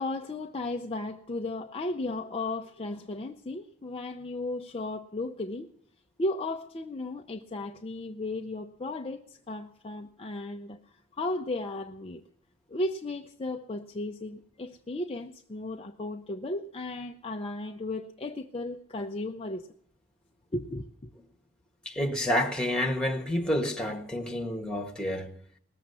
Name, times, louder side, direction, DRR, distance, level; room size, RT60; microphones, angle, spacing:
voice 1, 0.0-5.7 6.2-10.8 11.1-12.2 12.7-19.7 20.5-21.1, left 2 dB, 25° left, 0.6 m, -35 dB
voice 2, 21.8-25.3, left 1 dB, 5° left, 1.5 m, -29 dB
19.0 x 7.3 x 9.5 m
head